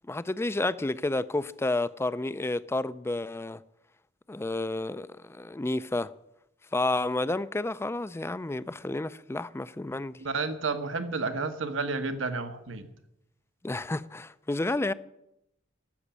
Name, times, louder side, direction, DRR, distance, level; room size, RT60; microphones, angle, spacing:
voice 1, 0.1-3.6 4.3-6.1 6.7-10.2 13.6-14.9, left 2 dB, 15° left, 0.4 m, -30 dB
voice 2, 10.2-12.9, right 4 dB, 70° right, 1.2 m, -31 dB
13.5 x 7.1 x 10.0 m
head